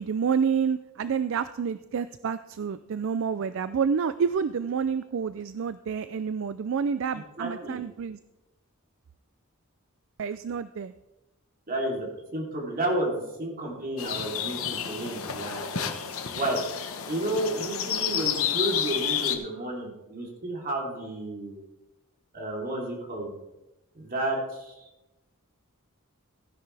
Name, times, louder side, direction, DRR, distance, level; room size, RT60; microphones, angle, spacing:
voice 1, 0.0-8.2 10.2-10.9, right 6 dB, 65° right, 13 dB, 0.4 m, -28 dB
voice 2, 7.4-7.8 11.7-12.1 12.3-15.9 16.3-16.6 17.1-21.6 22.3-23.3 23.9-24.9, right 1 dB, 45° right, -2 dB, 3.4 m, -31 dB
sound 1, 14.0-19.3, left 8 dB, 75° left, 1.1 m, -30 dB
15.5 x 10.5 x 3.4 m, 0.98 s
head